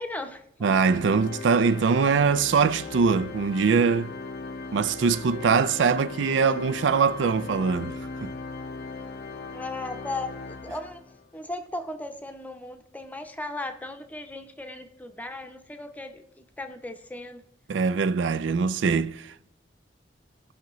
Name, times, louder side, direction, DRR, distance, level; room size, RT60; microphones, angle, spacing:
voice 1, 0.0-0.4 9.5-11.0 11.3-17.4, left 2 dB, 10° left, 0.7 m, -37 dB
Organ, 0.6-11.3, left 3 dB, 60° left, 0.5 m, -38 dB
voice 2, 0.6-4.1 4.7-7.9 8.2-8.3 17.7-19.3, right 5 dB, 85° right, 0.4 m, -22 dB
17.0 x 5.7 x 3.0 m
head